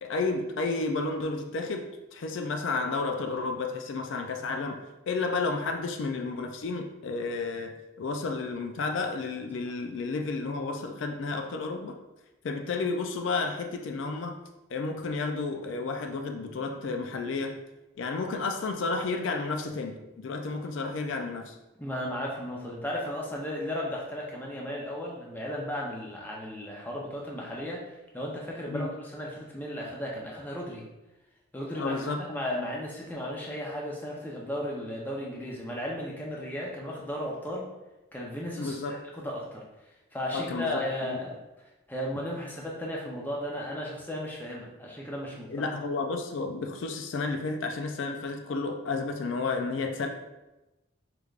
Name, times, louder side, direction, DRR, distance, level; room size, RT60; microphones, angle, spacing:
voice 1, 0.0-12.0 12.4-14.4 14.7-17.6 18.0-21.6 28.7-28.9 31.8-32.3 38.6-39.0 40.3-41.2 45.5-50.1, left 3 dB, 70° left, 5 dB, 0.4 m, -32 dB
voice 2, 21.8-30.9 31.5-37.7 38.1-39.6 40.1-41.4 41.9-45.7, left 1 dB, 10° left, -3 dB, 0.6 m, -35 dB
4.9 x 3.3 x 2.4 m, 1.0 s
head